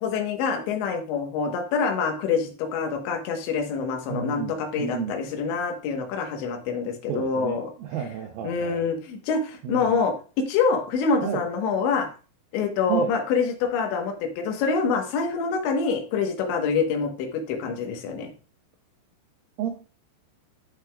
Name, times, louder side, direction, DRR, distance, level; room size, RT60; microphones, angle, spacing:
voice 1, 0.0-7.7 8.4-12.1 12.5-18.3, left 5 dB, 90° left, 4 dB, 3.5 m, -26 dB
voice 2, 4.1-5.2 7.1-8.9 9.6-10.0 11.2-11.5 12.9-13.2 19.6-19.7, right 7 dB, 80° right, 4 dB, 2.1 m, -31 dB
11.5 x 6.2 x 2.3 m, 0.36 s
omnidirectional pair, 5.0 m